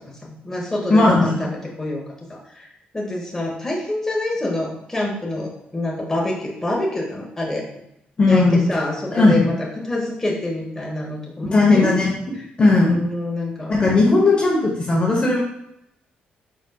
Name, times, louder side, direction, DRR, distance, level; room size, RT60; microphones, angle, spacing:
voice 1, 0.2-2.0 2.3-2.7 2.9-7.7 8.3-12.0 12.7-13.8, left 1 dB, 15° left, -2 dB, 1.2 m, -26 dB
voice 2, 0.9-1.3 8.2-8.6 9.1-9.4 11.5-12.1 12.6-13.0 13.7-15.4, left 2 dB, 30° left, -3 dB, 1.0 m, -16 dB
4.9 x 4.0 x 2.3 m, 0.80 s
cardioid pair, 95°, 3 cm